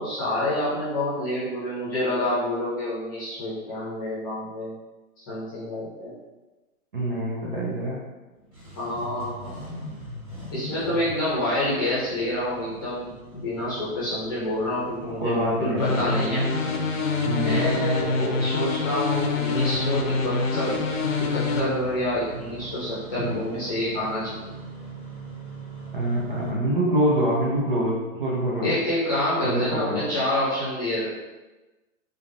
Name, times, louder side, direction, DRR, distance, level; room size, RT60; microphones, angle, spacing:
voice 1, 0.0-4.7 5.2-6.1 8.7-9.9 10.5-16.5 17.4-20.8 21.2-24.3 28.6-31.1, left 1 dB, 15° left, -10 dB, 0.8 m, -28 dB
voice 2, 6.9-8.0 15.2-16.1 17.3-17.6 23.2-23.4 25.9-28.8 29.4-30.1, right 1 dB, 35° right, -4 dB, 0.6 m, -25 dB
Engine starting, 8.4-26.5, right 1 dB, 15° right, 0.9 m, -41 dB
sound 1, 15.8-21.6, left 3 dB, 60° left, 0.7 m, -26 dB
4.0 x 3.5 x 2.6 m, 1.1 s
hypercardioid pair, 175°, 44 cm